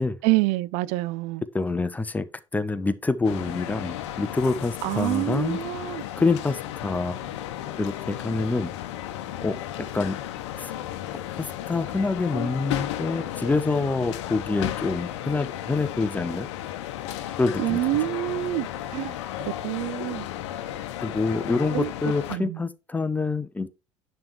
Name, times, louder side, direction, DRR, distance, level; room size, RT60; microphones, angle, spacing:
voice 1, 0.2-1.4 4.8-6.1 17.6-19.2 19.6-20.3 21.7-21.9 22.3-22.6, right 18 dB, 50° right, 0.4 m, -27 dB
voice 2, 1.5-2.3 2.5-5.6 6.2-7.4 7.8-8.7 9.4-10.2 10.6-10.7 11.3-16.5 17.4-17.8 21.0-23.7, left 3 dB, 10° left, 0.7 m, -26 dB
sound 1, 3.2-22.4, left 12 dB, 60° left, 0.9 m, -34 dB
10.5 x 3.5 x 4.6 m
figure-of-eight pair, 65°, 16 cm